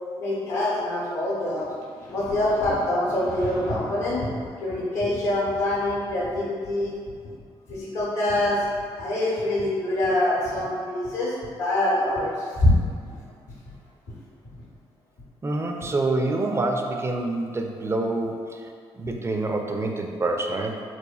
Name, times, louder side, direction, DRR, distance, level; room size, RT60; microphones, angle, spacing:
voice 1, 0.2-1.7 2.0-6.9 7.7-8.6 9.0-11.3 11.6-12.7 13.0-13.1, left 1 dB, 75° left, -6 dB, 0.7 m, -25 dB
voice 2, 15.4-18.7 18.9-20.8, right 2 dB, 20° right, 2 dB, 0.3 m, -27 dB
3.0 x 2.1 x 2.3 m, 2.1 s
hypercardioid pair, 40°, 13 cm